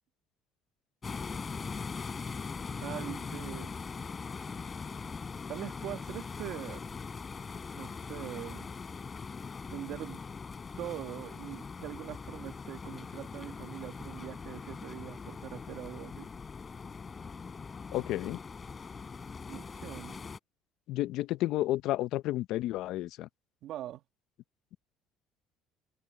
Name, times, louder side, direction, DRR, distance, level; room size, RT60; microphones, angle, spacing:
sound 1, 1.0-20.4, left 5 dB, 25° left, 4.0 m, -41 dB
voice 1, 2.7-3.8 5.5-6.9 7.7-8.7 9.7-10.2 10.8-16.3 19.5-20.2 23.6-24.0, right 13 dB, 60° right, 1.6 m, -42 dB
voice 2, 17.9-18.4 20.9-23.3, left 15 dB, 65° left, 0.6 m, -31 dB
cardioid pair, 135°, 0 cm